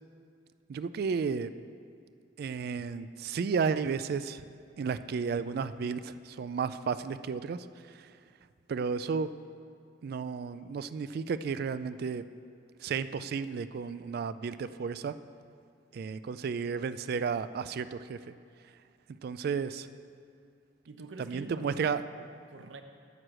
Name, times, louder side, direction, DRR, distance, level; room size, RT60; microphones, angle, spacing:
voice 1, 0.7-1.5 2.4-4.4 4.8-7.7 7.9-8.1 8.7-9.3 10.0-12.2 12.8-15.1 15.9-18.2 19.2-19.9 21.2-22.0, right 5 dB, 55° right, 13 dB, 0.3 m, -33 dB
voice 2, 20.9-22.8, right 2 dB, 85° right, 6 dB, 0.7 m, -47 dB
11.0 x 4.7 x 7.6 m, 2.4 s
head